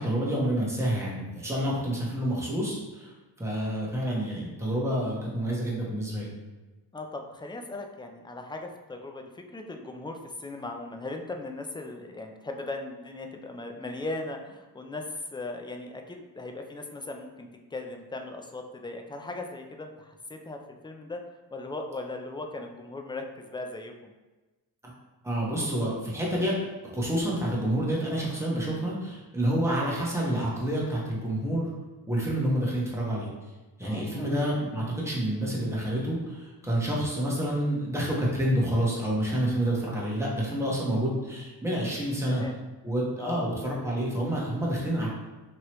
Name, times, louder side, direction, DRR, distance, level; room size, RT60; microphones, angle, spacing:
voice 1, 0.0-6.3 24.8-24.9 25.2-26.6 26.9-31.7 32.1-33.3 33.8-42.4 42.8-45.1, right 1 dB, 5° right, -5 dB, 1.1 m, -28 dB
voice 2, 6.9-21.2 21.5-24.1 33.8-34.4 42.0-42.6 43.2-43.6, left 2 dB, 10° left, 4 dB, 0.4 m, -38 dB
3.1 x 2.8 x 2.9 m, 1.2 s
cardioid pair, 55°, 44 cm